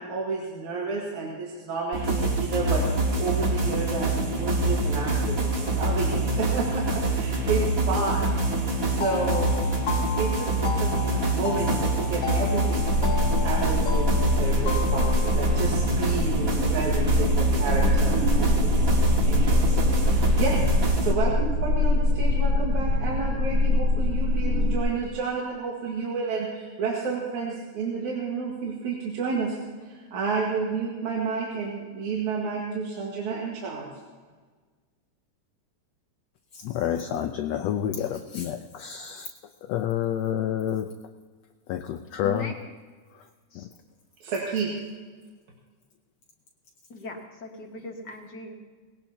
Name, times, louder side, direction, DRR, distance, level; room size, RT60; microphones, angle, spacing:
voice 1, 0.0-9.6 10.2-12.9 13.4-18.9 19.2-20.6 21.0-29.6 29.9-33.9 44.2-44.7, right 4 dB, 80° right, -3 dB, 3.1 m, -31 dB
sound 1, 1.9-21.1, right 2 dB, 35° right, 1.7 m, -25 dB
sound 2, 9.0-16.4, left 5 dB, 60° left, 1.8 m, -35 dB
sound 3, 12.7-24.8, left 1 dB, 60° right, 2.4 m, -24 dB
voice 2, 36.6-39.3 39.7-40.9 41.7-42.5 43.6-43.7, left 10 dB, 75° left, 5 dB, 1.7 m, -28 dB
voice 3, 42.2-42.5 43.5-43.7 46.9-48.6, left 2 dB, 45° left, 1 dB, 1.8 m, -39 dB
20.5 x 17.5 x 2.9 m, 1.4 s
omnidirectional pair, 3.3 m